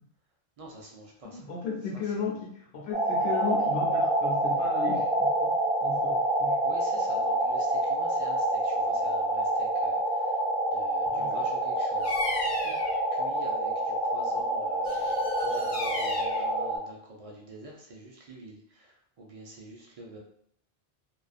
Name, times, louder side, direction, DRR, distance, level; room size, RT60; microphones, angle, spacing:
voice 1, 0.6-1.5 6.6-10.4 10.7-12.2 13.1-20.2, right 2 dB, 55° right, -2 dB, 0.4 m, -48 dB
voice 2, 1.2-5.5 5.8-6.6 11.0-11.5 12.4-12.8, left 5 dB, 80° left, -3 dB, 0.8 m, -35 dB
sound 1, 2.9-16.8, right 1 dB, 35° left, 0.9 m, -27 dB
Bird vocalization bird call bird song, 12.0-13.0 14.8-16.5, left 2 dB, 55° left, 0.4 m, -35 dB
2.5 x 2.2 x 2.3 m, 0.65 s
omnidirectional pair, 1.1 m